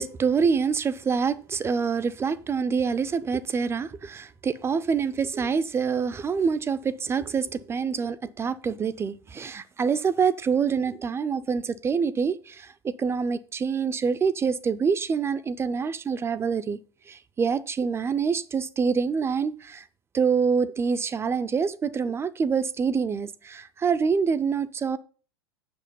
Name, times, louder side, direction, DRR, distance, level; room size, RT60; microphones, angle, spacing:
voice 1, 0.0-16.8 17.1-19.9 20.1-25.0, right 6 dB, 20° right, 0.5 m, -26 dB
7.8 x 6.3 x 5.4 m
figure-of-eight pair, 85°, 14 cm